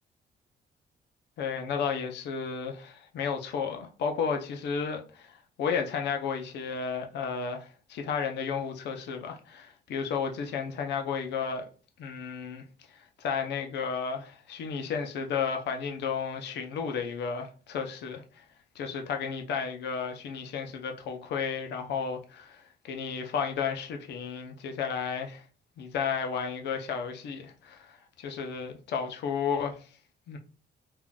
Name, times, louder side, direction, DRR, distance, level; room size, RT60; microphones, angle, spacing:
voice 1, 1.4-11.6 12.0-12.6 12.9-18.4 18.7-25.4 25.8-29.9 30.3-30.4, left 6 dB, 80° left, 0.6 m, -33 dB
3.6 x 2.5 x 2.3 m
cardioid pair, 170°, 17 cm